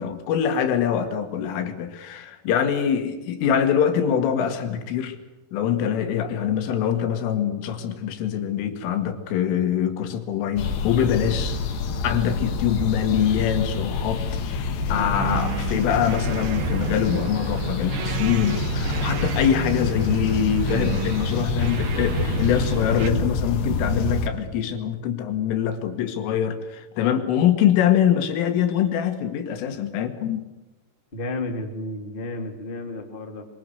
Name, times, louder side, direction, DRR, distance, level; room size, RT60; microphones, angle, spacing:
voice 1, 0.0-5.2 5.5-11.6 12.0-14.2 14.5-30.5, left 9 dB, 80° left, 8 dB, 4.5 m, -24 dB
sound 1, 10.6-24.3, left 4 dB, 65° left, 3.9 m, -27 dB
sound 2, 15.0-23.1, right 11 dB, 70° right, 2.4 m, -31 dB
voice 2, 31.1-33.4, left 2 dB, 20° left, 4 dB, 1.3 m, -32 dB
24.0 x 23.5 x 7.9 m, 1.0 s
omnidirectional pair, 5.8 m